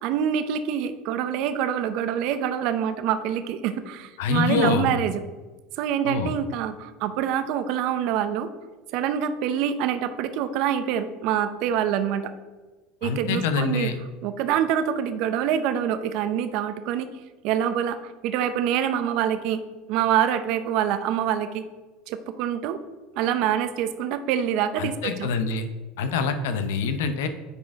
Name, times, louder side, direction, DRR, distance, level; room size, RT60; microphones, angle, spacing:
voice 1, 0.0-5.2 5.8-8.5 8.9-12.3 13.0-13.9 14.2-17.1 17.4-18.0 18.2-19.6 19.9-21.6 22.1-22.8 23.2-25.3, right 9 dB, 65° right, 10 dB, 0.6 m, -25 dB
voice 2, 4.2-4.9 6.0-6.3 13.0-13.9 24.8-25.6 26.0-27.3, left 5 dB, 80° left, 8 dB, 0.6 m, -25 dB
9.5 x 4.3 x 3.6 m, 1.3 s
supercardioid pair, 95°, 0 cm